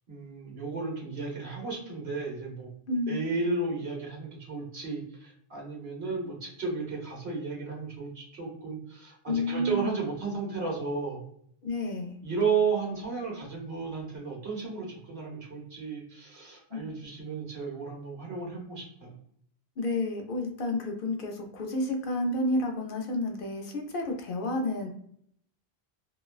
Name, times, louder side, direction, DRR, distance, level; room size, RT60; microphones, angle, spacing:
voice 1, 0.1-2.7 3.1-11.2 12.2-19.1, right 4 dB, 75° right, -2 dB, 1.3 m, -33 dB
voice 2, 2.9-3.2 9.3-10.0 11.6-12.2 16.7-16.9 19.8-24.9, left 1 dB, 65° left, 2 dB, 0.7 m, -30 dB
3.0 x 2.1 x 2.3 m, 0.67 s
omnidirectional pair, 1.0 m